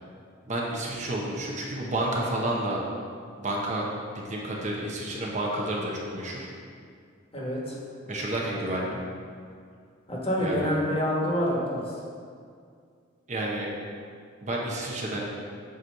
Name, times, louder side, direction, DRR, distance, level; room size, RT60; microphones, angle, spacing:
voice 1, 0.5-2.8 3.4-3.9 4.1-6.5 8.1-9.0 10.4-10.7 13.3-13.7 14.4-15.3, right 1 dB, 40° right, -3 dB, 1.0 m, -30 dB
voice 2, 7.3-7.8 10.1-11.8, equal, 30° left, -4 dB, 1.4 m, -27 dB
8.1 x 3.1 x 6.4 m, 2.2 s
head